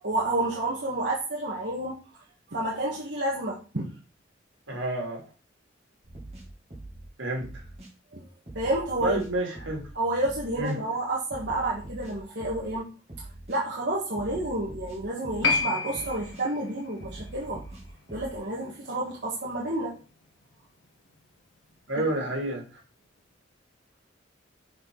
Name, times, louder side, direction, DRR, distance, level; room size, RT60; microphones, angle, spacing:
voice 1, 0.0-2.0 2.5-3.8 8.1-8.2 8.5-9.2 9.9-12.9 13.5-17.6 18.1-19.9 22.0-22.1, right 1 dB, 60° right, -4 dB, 1.7 m, -30 dB
voice 2, 4.7-5.2 7.2-7.5 9.0-9.9 10.6-10.7 21.9-22.7, right 1 dB, 85° right, -1 dB, 3.2 m, -29 dB
sound 1, 6.0-7.1 7.4-7.9 8.5-9.9 10.2-10.8 11.3-12.8 13.1-13.6 14.2-15.6 15.9-16.4 17.0-18.4, right 2 dB, 35° right, 2.5 m, -43 dB
Piano, 15.4-22.4 22.6-22.7, left 4 dB, 80° left, 1.4 m, -34 dB
7.4 x 4.7 x 4.0 m, 0.34 s
head